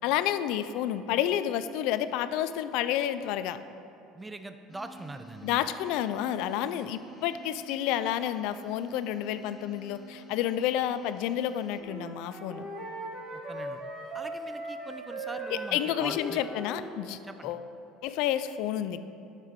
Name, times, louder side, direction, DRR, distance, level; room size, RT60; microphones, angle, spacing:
voice 1, 0.0-3.6 5.4-12.7 15.5-17.7 18.0-19.0, left 11 dB, 70° left, 12 dB, 0.4 m, -30 dB
voice 2, 4.1-5.6 13.3-13.8 14.1-16.4 17.2-17.5, right 2 dB, 15° right, 8 dB, 0.4 m, -42 dB
sound 1, 4.7-11.8, right 4 dB, 15° left, 1.7 m, -50 dB
Wind instrument woodwind instrument, 11.8-17.0, right 1 dB, 40° right, 1.3 m, -39 dB
10.5 x 6.5 x 3.6 m, 2.8 s
supercardioid pair, 90°, 0 cm